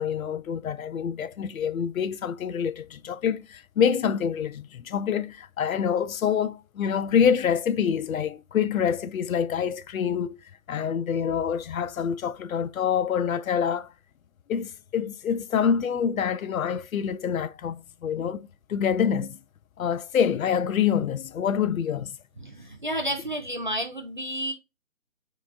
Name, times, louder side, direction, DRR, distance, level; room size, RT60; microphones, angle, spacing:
voice 1, 0.0-10.4 10.7-13.9 14.5-19.4 19.8-22.2, left 7 dB, 90° left, 0.5 m, -26 dB
voice 2, 22.4-24.5, equal, 40° right, 0.4 m, -31 dB
4.4 x 3.0 x 2.4 m
figure-of-eight pair, 160°, 40 cm